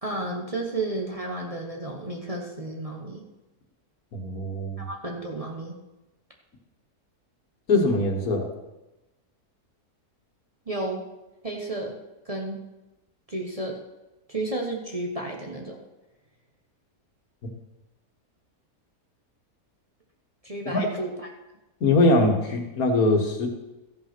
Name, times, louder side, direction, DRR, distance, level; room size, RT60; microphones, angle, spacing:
voice 1, 0.0-3.2 4.8-5.7 10.7-11.0 11.4-12.0 12.2-12.6 13.3-13.8 14.3-15.8 20.4-21.3, right 2 dB, 25° right, 0 dB, 1.1 m, -32 dB
voice 2, 4.1-4.8 7.7-8.5 20.7-20.9 21.8-23.5, left 2 dB, 70° left, 3 dB, 1.9 m, -22 dB
14.0 x 5.6 x 5.9 m, 1.0 s
omnidirectional pair, 1.6 m